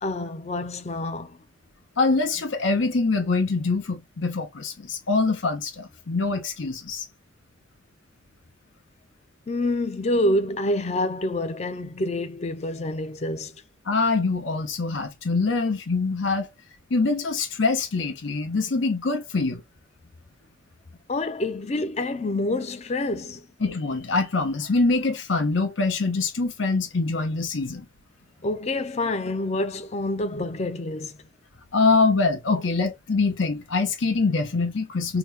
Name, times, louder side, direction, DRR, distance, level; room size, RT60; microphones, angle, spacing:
voice 1, 0.0-1.4 9.5-13.5 21.1-23.5 28.4-31.2, left 1 dB, 35° left, 0.5 m, -27 dB
voice 2, 2.0-7.1 13.9-16.5 16.9-19.6 23.6-27.9 31.7-35.2, left 3 dB, 80° left, 0.8 m, -24 dB
3.0 x 2.2 x 3.2 m
head